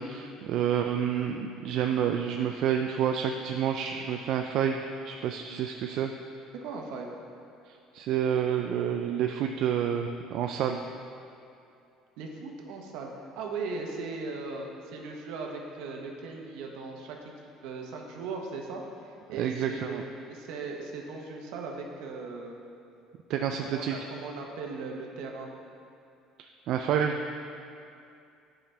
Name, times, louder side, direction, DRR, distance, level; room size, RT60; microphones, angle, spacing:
voice 1, 0.0-6.1 7.7-10.8 19.3-20.0 23.3-23.9 26.7-27.2, right 8 dB, 60° right, 4 dB, 0.3 m, -29 dB
voice 2, 6.5-7.1 12.2-17.2 17.6-22.6 23.4-25.5, right 4 dB, 75° right, 1 dB, 0.9 m, -38 dB
10.0 x 5.0 x 3.3 m, 2.5 s
cardioid pair, 145°, 0 cm